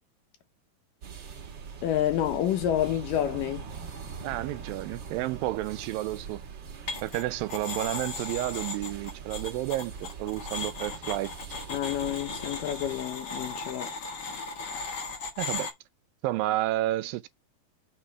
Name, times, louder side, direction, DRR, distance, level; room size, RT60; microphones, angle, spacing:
sound 1, 1.0-13.0, right 6 dB, 50° right, 1.4 m, -42 dB
voice 1, 1.8-3.7 11.7-13.9, left 11 dB, 75° left, 2.7 m, -28 dB
voice 2, 4.2-6.4 7.0-11.3 15.4-15.7 16.2-17.3, right 16 dB, 85° right, 2.4 m, -31 dB
sound 2, 6.9-7.2 7.5-15.7, left 4 dB, 50° left, 1.2 m, -37 dB
6.2 x 3.3 x 5.9 m
omnidirectional pair, 4.0 m